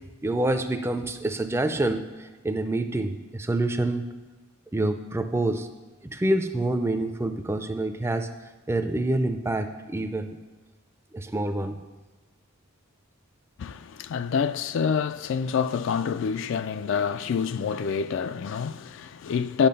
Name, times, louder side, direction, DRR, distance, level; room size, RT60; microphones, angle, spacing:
voice 1, 0.2-4.1 4.7-5.7 6.1-8.3 8.7-10.4 11.1-11.8, right 2 dB, 10° right, 0.4 m, -27 dB
voice 2, 13.6-19.7, left 6 dB, 60° left, 0.3 m, -27 dB
10.5 x 5.7 x 5.4 m
head